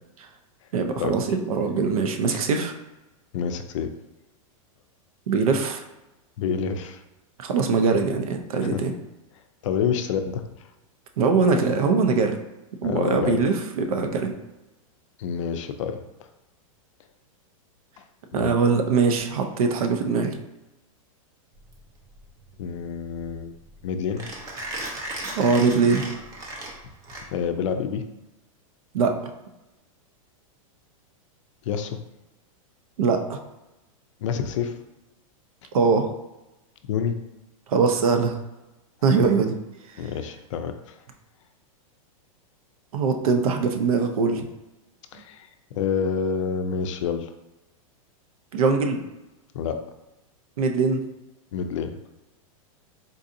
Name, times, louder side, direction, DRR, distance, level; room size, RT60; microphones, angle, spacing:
voice 1, 0.7-2.7 5.3-5.8 7.4-8.9 11.2-12.4 12.8-14.3 18.3-20.4 25.4-26.1 28.9-29.2 33.0-33.4 35.7-36.1 37.7-38.4 39.0-39.5 42.9-44.5 48.5-49.0 50.6-51.0, right 4 dB, 85° right, 5 dB, 0.6 m, -22 dB
voice 2, 3.3-4.0 6.4-7.0 8.7-8.8 9.6-10.4 12.8-13.4 15.2-16.0 18.0-18.1 18.3-18.5 22.6-23.5 23.8-24.3 27.3-28.1 31.7-32.0 34.2-34.8 36.9-37.2 40.0-41.0 45.1-45.5 45.7-47.3 49.5-49.8 51.5-52.0, left 7 dB, 60° left, 7 dB, 0.4 m, -28 dB
Mechanisms, 21.6-27.7, right 1 dB, 20° right, 0.4 m, -36 dB
3.9 x 2.7 x 2.5 m, 1.0 s
supercardioid pair, 165°, 18 cm